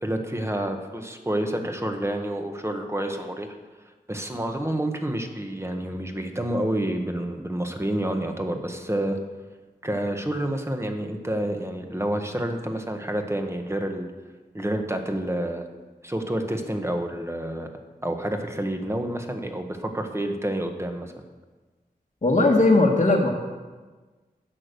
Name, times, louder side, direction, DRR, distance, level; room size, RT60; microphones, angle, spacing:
voice 1, 0.0-3.5 4.1-9.2 9.8-14.1 14.5-15.6 16.0-17.7 18.0-21.1, right 1 dB, 15° right, 5 dB, 1.4 m, -28 dB
voice 2, 22.2-23.3, left 2 dB, 50° left, -2 dB, 1.4 m, -18 dB
11.0 x 8.6 x 6.8 m, 1.3 s
wide cardioid pair, 75°, 16 cm